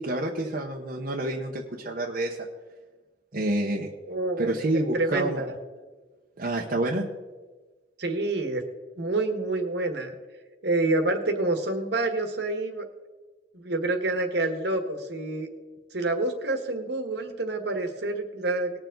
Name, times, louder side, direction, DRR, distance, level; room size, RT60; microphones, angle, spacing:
voice 1, 0.0-2.5 3.3-3.9 4.4-5.4 6.4-7.1, right 1 dB, 50° right, -1 dB, 1.0 m, -28 dB
voice 2, 4.1-5.6 8.0-8.6 9.0-10.1 10.6-12.9 13.5-15.5 15.9-18.7, right 2 dB, 65° right, 6 dB, 1.5 m, -28 dB
19.5 x 7.0 x 3.9 m, 1.3 s
head